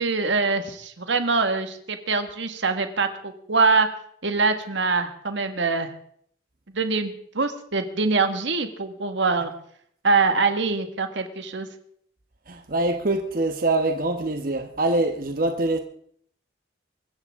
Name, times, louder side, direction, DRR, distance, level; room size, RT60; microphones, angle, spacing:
voice 1, 0.0-3.9 4.2-5.9 6.7-9.5 10.0-11.7, right 4 dB, 80° right, 1.7 m, -24 dB
voice 2, 12.5-15.8, right 2 dB, 50° right, 1.1 m, -24 dB
24.0 x 14.0 x 3.6 m
head